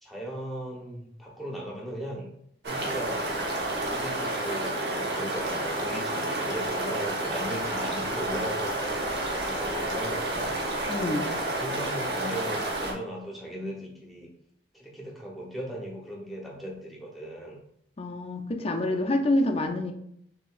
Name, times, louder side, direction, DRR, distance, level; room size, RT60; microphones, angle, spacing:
voice 1, 0.0-2.3 2.6-3.4 3.9-10.6 11.3-14.3 14.7-17.6 18.6-19.1, equal, ahead, -3 dB, 1.0 m, -38 dB
sound 1, 2.6-12.9, right 1 dB, 60° right, 1.0 m, -30 dB
voice 2, 10.9-11.3 18.0-19.9, left 1 dB, 30° left, 4 dB, 0.5 m, -27 dB
6.5 x 2.8 x 2.5 m, 0.72 s
head